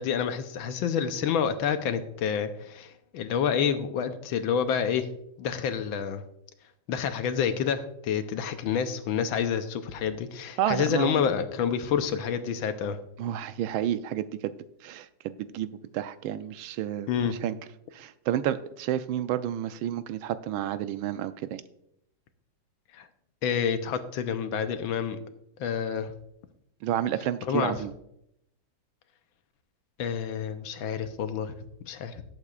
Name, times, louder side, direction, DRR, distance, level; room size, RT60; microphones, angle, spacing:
voice 1, 0.0-5.1 5.4-6.2 6.9-13.0 17.1-17.4 22.9-23.1 23.4-25.2 25.6-26.1 27.5-27.8 30.0-31.5 31.8-32.2, left 7 dB, 80° left, 9 dB, 1.6 m, -28 dB
voice 2, 10.6-11.3 13.2-14.5 14.8-15.7 15.9-17.6 17.9-21.6 26.8-27.9, right 11 dB, 80° right, 12 dB, 1.4 m, -30 dB
18.5 x 8.0 x 2.4 m, 0.77 s
omnidirectional pair, 2.2 m